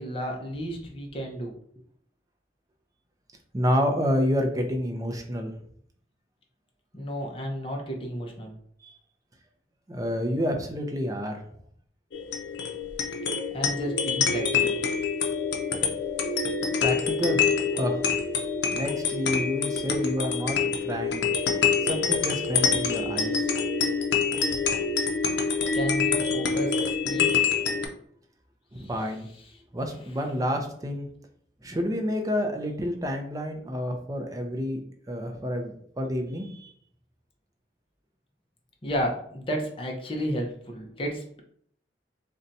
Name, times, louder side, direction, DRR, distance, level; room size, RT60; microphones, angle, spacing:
voice 1, 0.0-1.6 6.9-8.6 13.5-14.8 25.7-27.5 28.8-28.9 38.8-41.4, equal, 30° left, 1 dB, 0.6 m, -32 dB
voice 2, 3.5-5.5 8.8-8.9 9.9-11.4 16.8-17.4 17.7-18.1 18.7-21.3 21.8-23.5 28.7-29.3 29.7-31.1 31.6-34.8 35.1-36.7, equal, 20° right, 3 dB, 0.4 m, -29 dB
sound 1, 12.1-27.9, left 5 dB, 85° left, 0.5 m, -26 dB
2.6 x 2.2 x 3.9 m, 0.63 s
head